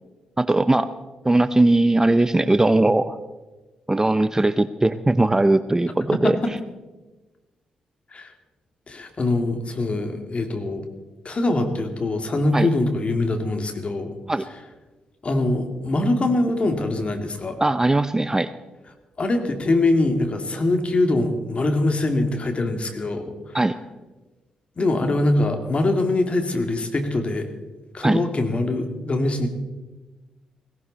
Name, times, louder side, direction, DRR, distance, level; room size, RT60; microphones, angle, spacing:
voice 1, 0.4-0.9 1.2-3.2 3.9-6.4 12.5-12.7 14.3-14.4 17.6-18.5 23.5-23.8 28.0-28.2, right 2 dB, 20° right, 13 dB, 0.7 m, -19 dB
voice 2, 8.9-10.8 11.2-14.1 15.2-17.6 19.2-23.5 24.8-27.5 27.9-29.5, left 2 dB, 45° left, 6 dB, 2.5 m, -23 dB
17.5 x 16.5 x 4.2 m, 1.2 s
hypercardioid pair, 45°, 3 cm